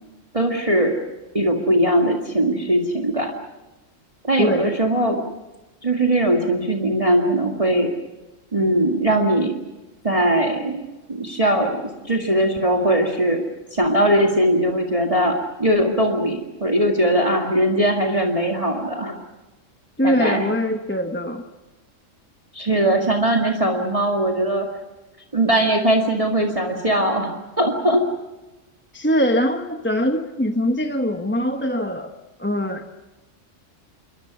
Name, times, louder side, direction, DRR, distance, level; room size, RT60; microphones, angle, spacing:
voice 1, 0.3-1.0 1.3-3.3 4.2-5.2 5.8-7.9 8.5-9.6 10.0-10.8 11.1-13.4 13.7-19.2 20.0-20.5 22.5-24.7 25.3-28.0, right 1 dB, 25° right, 1 dB, 2.1 m, -20 dB
voice 2, 20.0-21.4 28.9-32.1 32.4-32.8, equal, 10° left, 5 dB, 1.1 m, -22 dB
27.0 x 23.5 x 6.1 m, 1.1 s
omnidirectional pair, 1.3 m